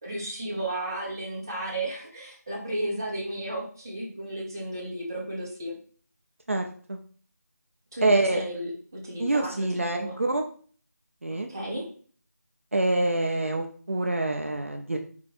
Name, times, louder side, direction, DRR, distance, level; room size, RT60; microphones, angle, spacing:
voice 1, 0.0-5.7 7.9-10.2 11.2-11.8, right 1 dB, 15° right, -6 dB, 0.9 m, -33 dB
voice 2, 6.5-7.0 8.0-8.4 9.2-10.4 11.2-11.5 12.7-15.0, right 2 dB, 50° right, 3 dB, 0.5 m, -26 dB
4.6 x 2.6 x 4.2 m, 0.43 s
figure-of-eight pair, 175°, 9 cm